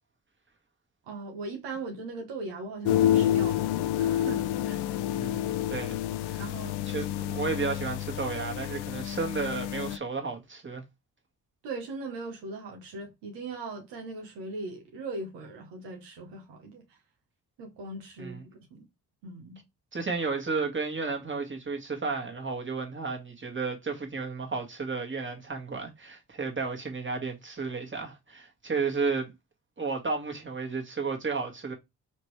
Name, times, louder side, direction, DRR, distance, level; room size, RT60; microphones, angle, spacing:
voice 1, 1.1-3.7 4.0-4.8 5.2-5.3 6.4-6.8 11.6-17.0 17.6-18.9 19.2-19.6, right 3 dB, 80° right, 1.2 m, -39 dB
sound 1, 2.9-10.0, left 12 dB, 70° left, 0.5 m, -28 dB
voice 2, 5.1-6.4 6.9-10.8 18.2-18.4 19.9-29.3 29.8-31.7, right 4 dB, 30° right, 1.8 m, -33 dB
4.2 x 3.1 x 3.2 m
hypercardioid pair, 40°, 42 cm